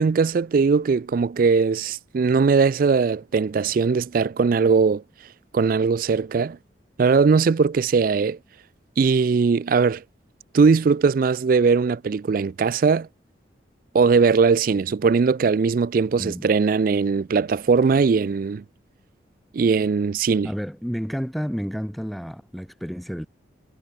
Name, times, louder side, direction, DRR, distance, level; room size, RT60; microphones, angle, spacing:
voice 1, 0.0-5.0 5.5-6.6 7.0-8.4 9.0-10.0 10.5-13.1 13.9-18.6 19.5-20.5, right 5 dB, 50° right, 0.3 m, -20 dB
voice 2, 20.4-23.3, equal, ahead, 1.3 m, -30 dB
head